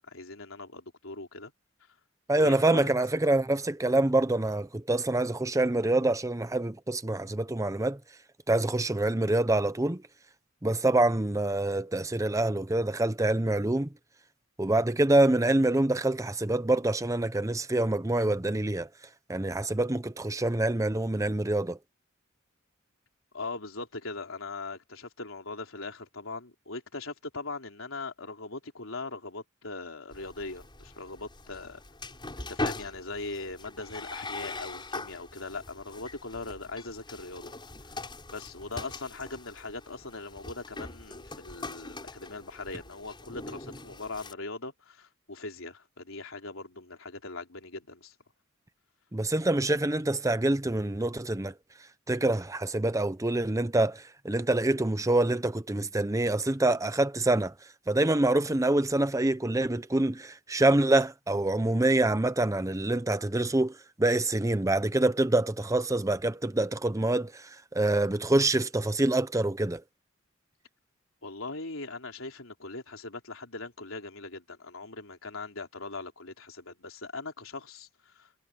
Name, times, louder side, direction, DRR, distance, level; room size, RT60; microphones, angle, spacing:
voice 1, 0.0-1.5 2.3-2.9 23.3-31.8 32.4-37.5 38.3-48.1 71.2-78.3, left 3 dB, 80° left, 3.7 m, -40 dB
voice 2, 2.3-8.0 8.5-10.0 10.6-13.9 14.6-18.9 19.3-21.8 49.1-51.5 52.1-57.5 57.9-63.7 64.0-69.8, right 2 dB, 15° right, 0.7 m, -26 dB
sound 1, 30.1-44.3, left 2 dB, 25° left, 7.3 m, -41 dB
head